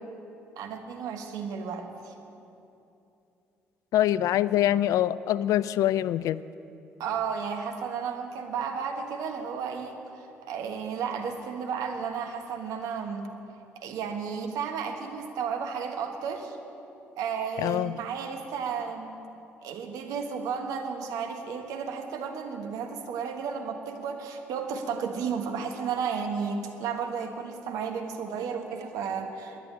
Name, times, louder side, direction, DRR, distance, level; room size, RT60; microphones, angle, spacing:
voice 1, 0.6-2.1 7.0-13.3 13.7-16.6 17.2-19.2 19.6-29.6, right 6 dB, 65° right, 4 dB, 1.5 m, -33 dB
voice 2, 3.9-6.4 17.6-17.9, left 12 dB, 60° left, 17 dB, 0.4 m, -24 dB
12.0 x 10.5 x 8.9 m, 2.8 s
hypercardioid pair, 50°, 6 cm